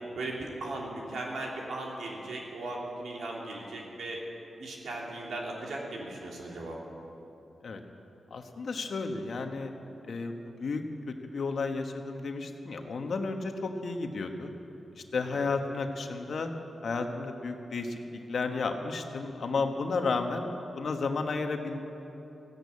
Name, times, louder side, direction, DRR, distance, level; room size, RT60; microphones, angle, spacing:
voice 1, 0.1-4.2 4.6-6.8 15.1-15.4, right 2 dB, 85° right, -2 dB, 3.0 m, -37 dB
voice 2, 8.3-9.7 10.1-10.8 11.1-14.5 14.9-16.5 16.8-21.8, left 4 dB, 70° left, 5 dB, 1.4 m, -32 dB
15.0 x 11.0 x 8.5 m, 3.0 s
cardioid pair, 65°, 0 cm